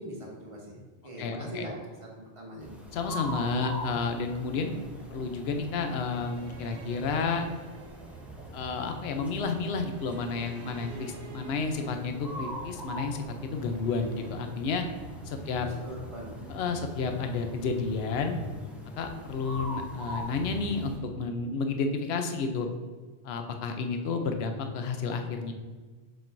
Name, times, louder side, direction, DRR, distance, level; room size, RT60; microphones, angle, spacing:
voice 1, 0.0-1.8 2.2-2.7 15.4-16.4, right 1 dB, 30° right, -2 dB, 1.3 m, -42 dB
voice 2, 1.2-1.7 2.9-4.8 5.1-7.5 8.5-14.8 15.2-15.7 16.5-18.4 19.0-22.7 23.2-25.5, left 4 dB, 70° left, 6 dB, 0.9 m, -31 dB
sound 1, 2.6-21.0, equal, ahead, 0.7 m, -42 dB
sound 2, 4.5-14.3, right 5 dB, 80° right, 1.1 m, -51 dB
7.2 x 5.2 x 2.6 m, 1.4 s
omnidirectional pair, 1.1 m